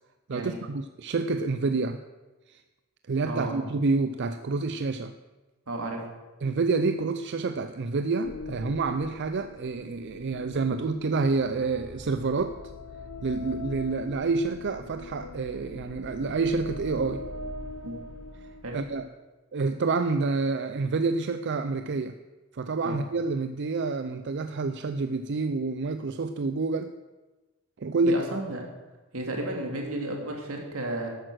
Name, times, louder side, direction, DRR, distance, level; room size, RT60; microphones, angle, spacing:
voice 1, 0.3-2.0 2.5-2.6 3.1-5.1 6.4-12.6 13.2-17.2 18.4-19.1 19.5-22.2 22.5-27.0 27.8-28.2, right 3 dB, 55° right, 9 dB, 0.5 m, -28 dB
voice 2, 3.3-3.6 5.7-6.0 17.8-18.0 18.6-18.8 22.8-23.0 28.0-28.6 29.1-31.1, right 1 dB, 85° right, 1 dB, 2.7 m, -33 dB
sound 1, 8.2-19.1, left 2 dB, 70° left, 0.9 m, -42 dB
12.5 x 9.0 x 6.4 m, 1.2 s
head